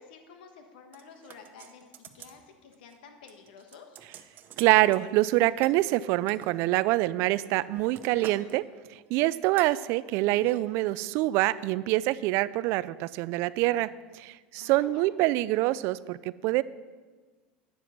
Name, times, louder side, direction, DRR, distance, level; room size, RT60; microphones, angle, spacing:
voice 1, 0.0-4.0 14.6-15.1, left 5 dB, 80° left, 5 dB, 1.3 m, -51 dB
sound 1, 0.9-2.4 2.7-3.0 3.3-5.0 5.6-6.6 7.2-8.5 8.8-9.1 9.6-9.8 10.3-10.6 10.9-11.0, right 8 dB, 40° right, 0.8 m, -49 dB
voice 2, 4.6-8.7 9.1-13.9 14.1-16.6, right 17 dB, 60° right, 18 dB, 0.3 m, -25 dB
9.5 x 7.2 x 5.9 m, 1.4 s
supercardioid pair, 110°, 5 cm